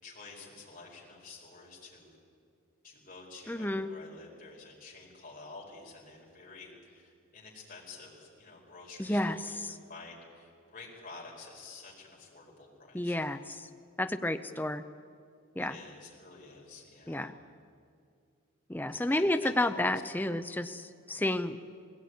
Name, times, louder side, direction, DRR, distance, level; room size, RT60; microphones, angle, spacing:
voice 1, 0.0-2.2 2.8-9.6 9.9-13.5 15.6-17.3 18.9-19.9, left 3 dB, 40° left, -3 dB, 4.9 m, -50 dB
voice 2, 3.5-3.9 9.0-9.8 12.9-13.7 14.0-14.8 15.6-15.8 17.1-17.3 18.7-21.6, left 1 dB, 10° left, 8 dB, 0.6 m, -31 dB
19.5 x 17.0 x 9.4 m, 2.3 s
head